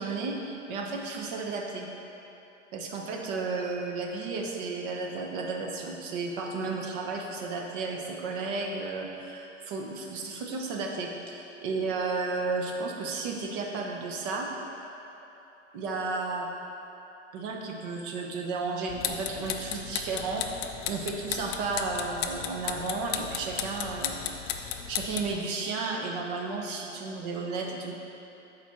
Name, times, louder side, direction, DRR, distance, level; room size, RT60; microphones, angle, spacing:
voice 1, 0.0-1.9 2.7-14.5 15.7-16.5 17.3-24.1 24.9-27.9, right 3 dB, 45° right, 1 dB, 1.0 m, -33 dB
sound 1, 18.9-25.4, left 9 dB, 35° left, 0.4 m, -35 dB
7.2 x 4.4 x 4.4 m, 2.9 s
hypercardioid pair, 110°, 38 cm